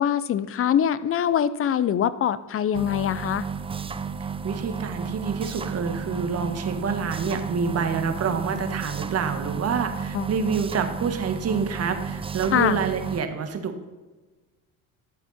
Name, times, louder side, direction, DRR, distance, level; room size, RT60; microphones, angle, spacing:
voice 1, 0.0-3.5 10.1-10.3 12.5-12.8, left 9 dB, 40° left, 16 dB, 0.6 m, -23 dB
sound 1, 2.7-13.2, right 6 dB, 15° right, 0.5 m, -32 dB
voice 2, 4.4-13.8, right 5 dB, 40° right, 7 dB, 1.6 m, -27 dB
12.0 x 7.4 x 4.3 m, 1.2 s
supercardioid pair, 100°, 36 cm